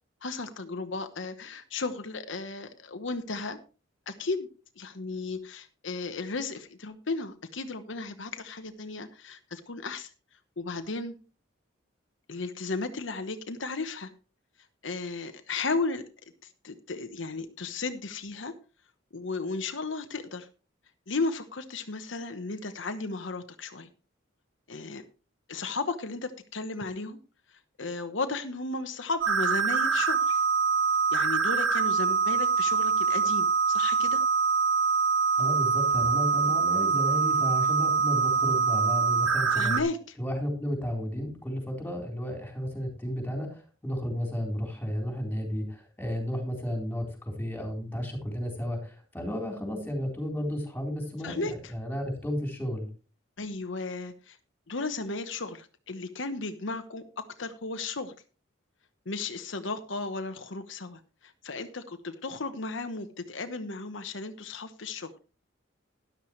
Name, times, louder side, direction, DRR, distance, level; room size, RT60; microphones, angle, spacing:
voice 1, 0.2-3.6 4.1-4.5 4.8-10.1 10.6-11.2 12.3-14.1 14.8-16.0 16.4-18.5 19.1-20.5 21.1-23.9 24.7-25.0 25.5-27.2 27.5-30.4 31.1-34.2 39.5-40.2 51.2-51.7 53.4-54.4 54.7-58.1 59.1-65.1, left 3 dB, 70° left, 8 dB, 1.1 m, -35 dB
sound 1, 29.2-39.8, right 5 dB, 80° right, 1.5 m, -24 dB
voice 2, 35.4-39.8 40.2-52.9, equal, 10° left, 2 dB, 3.9 m, -33 dB
13.0 x 11.5 x 3.2 m, 0.34 s
head